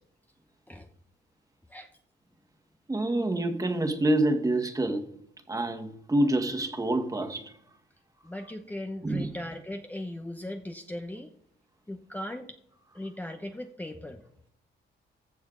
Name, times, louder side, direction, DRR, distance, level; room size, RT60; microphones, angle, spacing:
voice 1, 2.9-5.0 5.5-7.5 9.0-9.3, right 1 dB, 15° right, 1.7 m, -27 dB
voice 2, 8.2-11.3 11.9-12.6 12.9-14.2, left 1 dB, 10° left, 0.9 m, -38 dB
15.0 x 6.9 x 3.9 m
cardioid pair, 90°, 20 cm